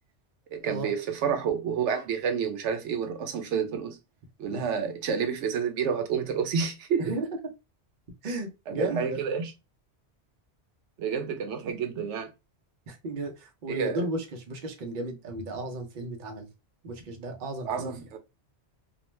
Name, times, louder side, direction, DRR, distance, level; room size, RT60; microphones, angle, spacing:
voice 1, 0.5-4.0 4.4-7.2 8.7-9.5 11.0-12.3 13.7-14.1 17.6-18.2, right 7 dB, 85° right, 0.9 m, -29 dB
voice 2, 8.2-9.2 12.9-16.5 16.8-18.0, right 2 dB, 50° right, 0.7 m, -34 dB
2.4 x 2.1 x 3.0 m
omnidirectional pair, 1.2 m